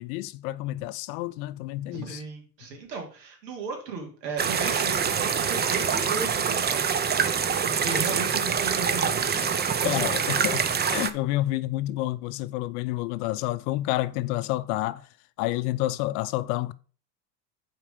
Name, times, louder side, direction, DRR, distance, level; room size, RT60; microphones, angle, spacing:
voice 1, 0.0-2.2 9.4-15.0 15.4-16.7, left 16 dB, 65° left, 0.7 m, -29 dB
voice 2, 1.9-6.8 7.6-10.1, right 4 dB, 85° right, 2.8 m, -35 dB
sound 1, 4.4-11.1, right 7 dB, 20° right, 0.6 m, -25 dB
7.1 x 4.8 x 5.1 m
hypercardioid pair, 95°, 49 cm